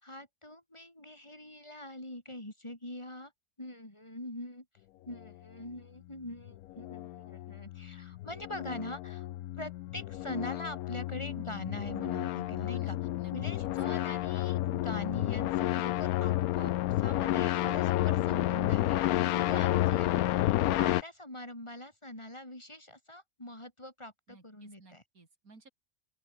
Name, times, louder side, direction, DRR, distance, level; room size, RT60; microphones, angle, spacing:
voice 1, 0.0-3.3 3.6-4.7 5.0-9.3 9.6-13.0 13.3-25.0, left 1 dB, 20° left, 4.3 m, -43 dB
sound 1, 6.5-21.0, left 15 dB, 80° left, 1.0 m, -31 dB
voice 2, 12.7-13.7 24.3-25.7, right 3 dB, 75° right, 4.2 m, -57 dB
open air
omnidirectional pair, 1.5 m